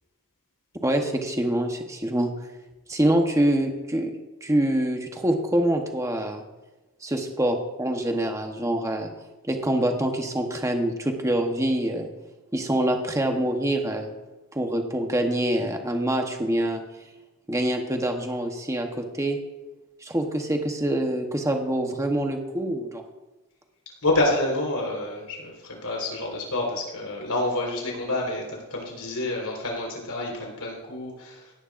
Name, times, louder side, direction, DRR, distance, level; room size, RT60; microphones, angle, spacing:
voice 1, 0.8-2.3 2.9-4.1 4.4-6.4 7.0-9.1 9.4-12.1 12.5-14.1 14.5-16.8 17.5-19.4 20.0-23.0, right 1 dB, 15° right, 4 dB, 1.0 m, -25 dB
voice 2, 24.0-31.5, left 2 dB, 85° left, -1 dB, 4.3 m, -28 dB
17.0 x 11.0 x 2.6 m, 1.1 s
head